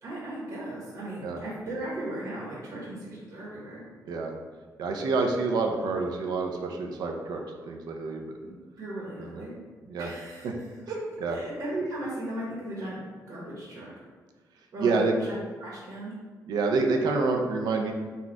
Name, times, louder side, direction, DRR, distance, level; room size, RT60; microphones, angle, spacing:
voice 1, 0.0-3.8 8.4-9.5 10.0-13.9 14.7-16.2, right 1 dB, 60° right, -6 dB, 1.1 m, -37 dB
voice 2, 4.8-7.4 7.7-8.4 9.2-9.4 9.9-10.1 11.2-11.3 14.8-15.1 16.5-17.9, right 3 dB, 90° right, 2 dB, 0.5 m, -27 dB
4.2 x 2.4 x 4.4 m, 1.4 s
cardioid pair, 125°, 7 cm